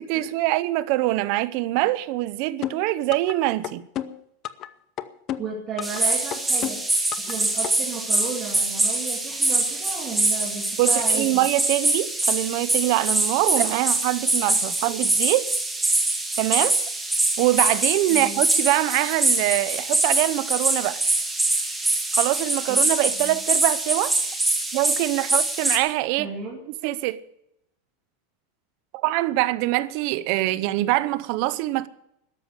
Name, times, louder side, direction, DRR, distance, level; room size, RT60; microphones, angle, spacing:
voice 1, 0.0-3.8 10.8-15.5 16.4-16.8 17.4-21.0 22.1-24.2 24.7-26.3 26.8-27.2 28.9-31.9, right 17 dB, 45° right, 0.8 m, -24 dB
sound 1, 2.6-3.3 3.6-4.7 5.0-6.0 6.3-7.3 7.6-7.7, left 11 dB, 30° left, 0.7 m, -31 dB
voice 2, 5.4-6.8 7.2-11.4 18.1-18.4 22.7-22.8 23.2-23.4 26.2-26.6, right 5 dB, 25° right, 2.5 m, -34 dB
sound 2, 5.8-25.8, right 2 dB, 5° right, 1.6 m, -24 dB
13.5 x 10.5 x 7.4 m
supercardioid pair, 170°, 0 cm